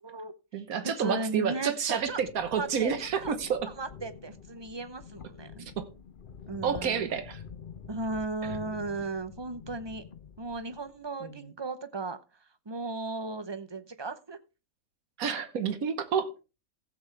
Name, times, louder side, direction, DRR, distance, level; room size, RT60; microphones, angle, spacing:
voice 1, 0.0-0.6 1.0-2.2 2.6-3.4 3.8-5.7 6.5-7.0 7.9-10.0 10.4-12.2 12.7-14.4, right 2 dB, 30° right, 0.5 m, -36 dB
voice 2, 0.5-3.7 5.8-5.9 6.6-7.4 11.2-11.5 15.2-16.3, right 7 dB, 90° right, 1.5 m, -30 dB
sound 1, 1.8-11.1, left 7 dB, 45° left, 0.9 m, -47 dB
15.5 x 7.8 x 3.3 m
omnidirectional pair, 1.5 m